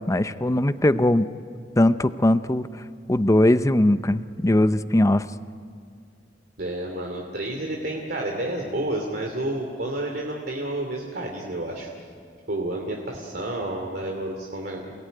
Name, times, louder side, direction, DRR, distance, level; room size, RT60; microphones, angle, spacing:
voice 1, 0.1-1.3 1.8-2.7 3.1-5.3, left 1 dB, 20° left, 12 dB, 0.6 m, -20 dB
voice 2, 6.6-11.9 12.5-14.9, right 1 dB, 60° right, 1 dB, 2.8 m, -30 dB
29.0 x 18.0 x 9.3 m, 2.2 s
head